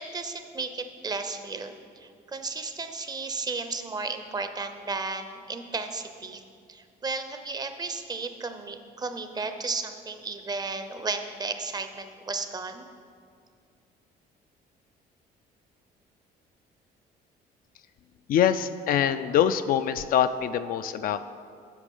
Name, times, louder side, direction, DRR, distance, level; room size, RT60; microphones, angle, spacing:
voice 1, 0.0-6.4 6.7-12.9, right 3 dB, 25° right, 8 dB, 0.6 m, -34 dB
voice 2, 18.3-21.2, left 9 dB, 60° left, 11 dB, 0.4 m, -24 dB
8.3 x 6.1 x 5.4 m, 2.3 s
cardioid pair, 110°, 17 cm